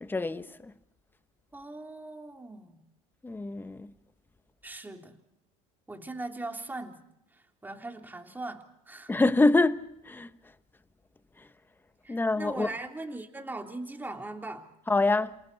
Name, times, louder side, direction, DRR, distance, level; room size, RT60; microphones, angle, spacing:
voice 1, 0.0-0.4 3.2-3.9 9.1-10.3 12.1-12.7 14.9-15.3, left 2 dB, 10° left, 1.2 m, -25 dB
voice 2, 1.5-2.8 4.6-5.2 5.9-7.0 7.6-9.1 12.0-14.7, right 2 dB, 10° right, 3.3 m, -40 dB
28.5 x 27.0 x 4.2 m
supercardioid pair, 100°, 17 cm